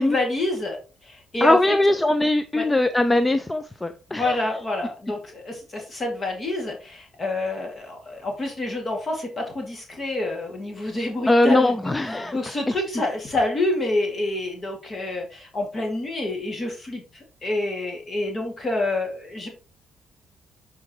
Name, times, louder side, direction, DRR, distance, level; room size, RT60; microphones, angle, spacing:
voice 1, 0.0-1.7 2.5-2.6 4.1-19.5, left 2 dB, 35° left, 2 dB, 2.3 m, -28 dB
voice 2, 1.4-4.4 11.3-12.5, left 1 dB, 15° left, 10 dB, 0.5 m, -21 dB
10.5 x 4.9 x 3.1 m, 0.34 s
cardioid pair, 90°, 0 cm